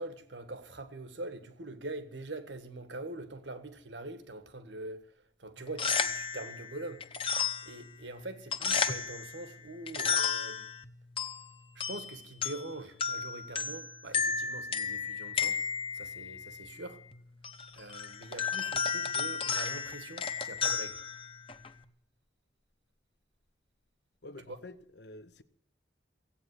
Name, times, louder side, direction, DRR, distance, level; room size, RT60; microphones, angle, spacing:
voice 1, 0.0-7.0 7.6-10.7 11.7-15.6 15.9-17.0 17.7-21.0 24.5-24.6, right 2 dB, 75° right, 1.6 m, -43 dB
sound 1, 5.6-21.8, left 6 dB, 30° left, 0.9 m, -34 dB
voice 2, 24.2-25.4, left 2 dB, 65° left, 1.0 m, -48 dB
16.5 x 8.8 x 9.7 m
head